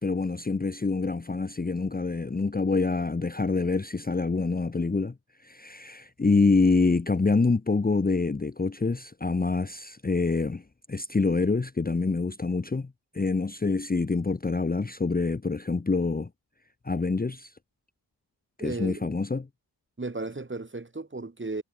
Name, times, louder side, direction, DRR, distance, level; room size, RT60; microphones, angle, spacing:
voice 1, 0.0-5.1 5.4-10.6 10.9-16.3 16.8-17.5 18.6-19.5, left 3 dB, 20° left, 1.0 m, -26 dB
voice 2, 18.6-19.1 20.0-21.6, right 3 dB, 25° right, 3.1 m, -35 dB
cardioid pair, 45°, 44 cm